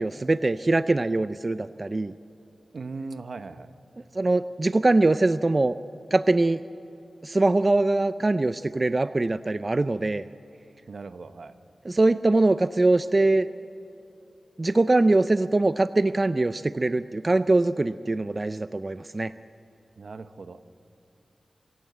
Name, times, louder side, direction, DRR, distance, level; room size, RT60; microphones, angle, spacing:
voice 1, 0.0-2.1 4.1-5.7 6.1-6.6 7.2-10.2 11.9-13.5 14.6-19.3, right 2 dB, 30° right, 12 dB, 0.4 m, -22 dB
voice 2, 2.7-3.7 10.9-11.5 20.0-20.6, right 3 dB, 65° right, 11 dB, 0.9 m, -38 dB
24.5 x 16.0 x 8.7 m, 2.9 s
wide cardioid pair, 95°, 0 cm